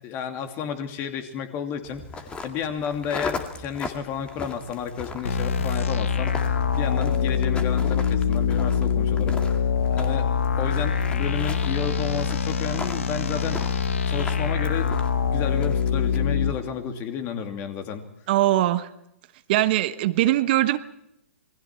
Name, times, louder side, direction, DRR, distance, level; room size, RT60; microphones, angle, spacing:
voice 1, 0.0-9.4 9.9-13.8 14.1-15.0 15.3-18.0, left 7 dB, 30° left, 6 dB, 2.7 m, -32 dB
sound 1, 1.8-16.2, left 3 dB, 15° left, 2.1 m, -38 dB
sound 2, 5.2-16.5, left 6 dB, 70° left, 1.6 m, -24 dB
voice 2, 18.3-18.9 19.5-20.8, right 15 dB, 45° right, 11 dB, 1.1 m, -21 dB
28.0 x 21.0 x 4.5 m, 0.80 s
figure-of-eight pair, 115°, 7 cm